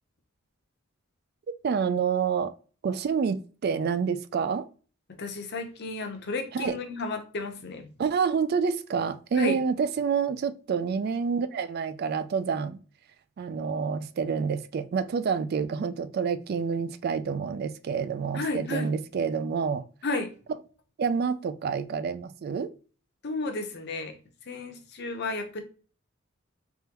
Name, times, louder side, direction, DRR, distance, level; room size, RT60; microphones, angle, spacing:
voice 1, 1.6-2.5 2.8-4.7 6.5-6.8 8.0-12.8 13.4-19.8 21.0-22.7, right 6 dB, 50° right, 0.3 m, -28 dB
voice 2, 5.2-7.9 9.3-9.6 18.3-18.9 20.0-20.3 23.2-24.1 24.5-25.6, left 3 dB, 55° left, 0.7 m, -32 dB
3.6 x 3.3 x 2.9 m
head